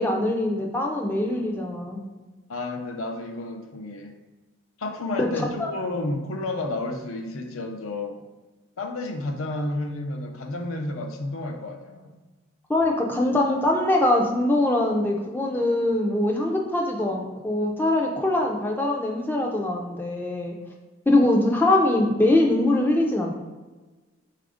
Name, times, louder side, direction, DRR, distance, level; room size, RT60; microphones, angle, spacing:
voice 1, 0.0-2.0 5.2-5.7 12.7-20.6 21.1-23.3, left 1 dB, 10° left, 0 dB, 0.3 m, -23 dB
voice 2, 2.5-4.1 4.8-8.2 8.8-12.1, left 2 dB, 85° left, 4 dB, 0.5 m, -31 dB
4.2 x 2.4 x 4.8 m, 1.2 s
head